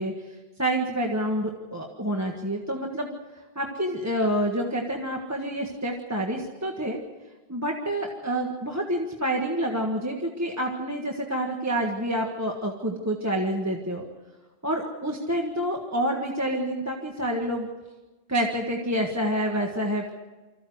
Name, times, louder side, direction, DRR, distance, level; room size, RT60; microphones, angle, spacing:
voice 1, 0.0-3.1 3.5-7.0 7.5-14.0 14.6-17.7 18.3-20.1, right 1 dB, 15° right, 0 dB, 1.6 m, -28 dB
25.5 x 14.5 x 7.9 m, 1.2 s
omnidirectional pair, 1.0 m